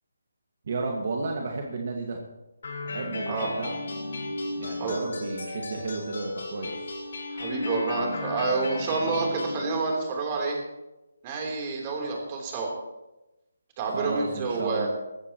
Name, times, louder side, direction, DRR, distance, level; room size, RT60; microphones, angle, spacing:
voice 1, 0.7-2.2 2.8-3.8 4.6-6.9 13.9-14.9, right 3 dB, 50° right, 0 dB, 1.9 m, -32 dB
sound 1, 2.6-9.6, left 2 dB, 60° left, 5.0 m, -34 dB
voice 2, 3.3-3.6 4.8-5.0 7.3-10.6 11.2-12.7 13.8-14.9, right 3 dB, 25° right, 0 dB, 3.5 m, -28 dB
19.0 x 15.5 x 3.1 m, 1.0 s
hypercardioid pair, 165°, 0 cm